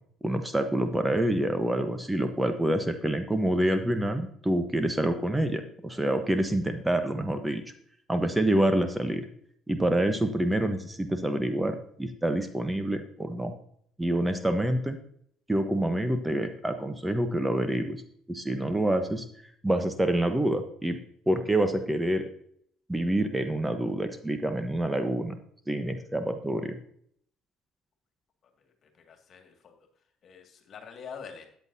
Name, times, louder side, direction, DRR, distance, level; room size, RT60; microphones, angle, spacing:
voice 1, 0.2-7.6 8.1-9.3 9.7-13.5 14.0-15.0 15.5-18.0 18.3-19.2 19.6-21.0 21.3-22.3 22.9-25.4 25.7-26.8, right 1 dB, 10° right, 8 dB, 1.1 m, -27 dB
voice 2, 29.1-29.7 30.2-31.5, left 6 dB, 50° left, 4 dB, 2.2 m, -45 dB
13.5 x 9.3 x 2.8 m, 0.65 s
hypercardioid pair, 55°, 0 cm